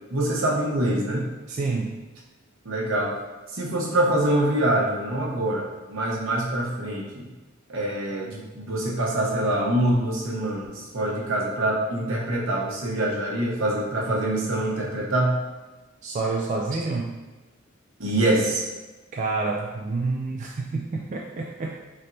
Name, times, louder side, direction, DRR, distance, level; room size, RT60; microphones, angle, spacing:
voice 1, 0.1-1.3 2.6-3.2 3.5-7.3 7.7-15.4 18.0-18.6, right 1 dB, 70° right, -3 dB, 0.9 m, -25 dB
voice 2, 1.5-2.0 16.0-17.2 19.1-21.8, right 3 dB, 35° right, -2 dB, 0.3 m, -28 dB
4.1 x 3.3 x 2.6 m, 1.2 s
head